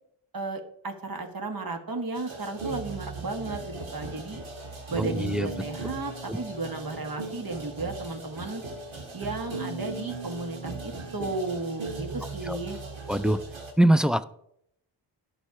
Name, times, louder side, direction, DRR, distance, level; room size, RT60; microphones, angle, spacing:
voice 1, 0.3-4.4 4.9-8.6 9.1-12.8, right 3 dB, 50° right, 5 dB, 1.5 m, -34 dB
sound 1, 2.1-13.7, right 3 dB, 85° right, 1.8 m, -38 dB
voice 2, 5.0-5.5 6.3-6.4 12.5-12.6 13.1-13.4 13.8-14.2, right 1 dB, ahead, 11 dB, 0.3 m, -22 dB
11.5 x 5.6 x 4.7 m, 0.72 s
cardioid pair, 65°, 46 cm